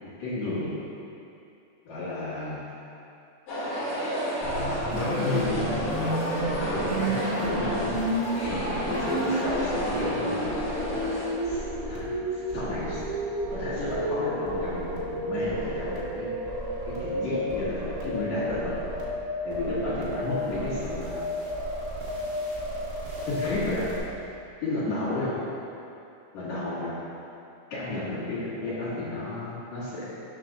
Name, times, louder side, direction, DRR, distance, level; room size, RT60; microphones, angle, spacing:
voice 1, 0.0-0.8 1.8-2.6 4.9-6.0 6.6-7.9 8.4-10.5 11.4-11.6 11.9-12.1 12.3-13.0 13.5-16.3 16.9-18.7 19.4-21.2 23.3-23.9 24.6-25.3 26.3-27.0 27.7-30.0, left 2 dB, 65° left, -13 dB, 3.2 m, -32 dB
sound 1, 3.5-11.3, equal, 90° left, 3.9 m, -30 dB
sound 2, 4.4-24.0, equal, 45° right, 0.7 m, -32 dB
sound 3, 10.6-19.3, right 5 dB, 85° right, 1.5 m, -43 dB
12.5 x 7.7 x 2.5 m, 2.7 s
omnidirectional pair, 3.7 m